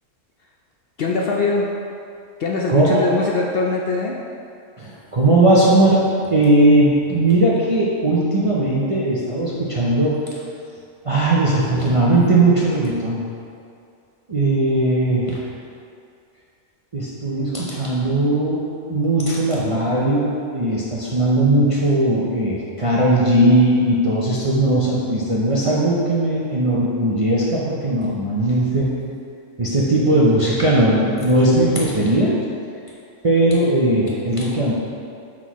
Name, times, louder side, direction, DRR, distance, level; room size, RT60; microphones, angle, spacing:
voice 1, 1.0-1.7 2.4-4.2, left 3 dB, 60° left, -2 dB, 0.7 m, -22 dB
voice 2, 2.7-3.0 4.8-10.2 11.0-13.2 14.3-15.4 16.9-28.9 29.6-32.3 33.2-34.7, right 1 dB, 35° right, -6 dB, 0.5 m, -18 dB
6.1 x 5.9 x 3.0 m, 2.4 s
omnidirectional pair, 1.3 m